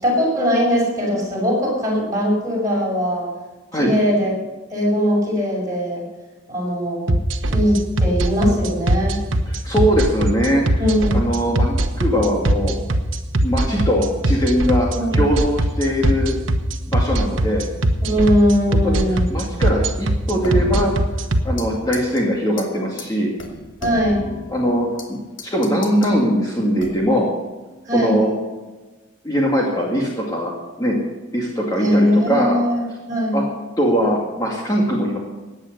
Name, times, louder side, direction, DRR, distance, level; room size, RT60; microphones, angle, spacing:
voice 1, 0.0-3.3 3.7-4.3 4.7-6.0 6.5-7.1 7.5-9.2 10.8-11.3 14.9-15.2 18.0-19.3 23.8-24.2 27.8-28.2 31.8-33.4, equal, 15° right, -4 dB, 6.5 m, -20 dB
sound 1, 7.1-21.4, right 1 dB, 85° right, 1.2 m, -19 dB
voice 2, 9.5-10.6 11.1-12.7 13.4-16.3 16.9-17.6 18.7-20.9 21.4-23.3 24.5-27.3 27.9-28.3 29.2-30.5 30.8-31.0 31.3-32.6 33.3-33.4 33.8-35.2, equal, 20° left, -3 dB, 2.3 m, -21 dB
sound 2, 20.4-21.7 21.9-22.2 22.6-22.7 23.0-23.1 23.4-25.1 25.4-26.2 26.8-27.2, left 2 dB, 75° left, 2.8 m, -34 dB
16.5 x 9.9 x 6.8 m, 1.2 s
head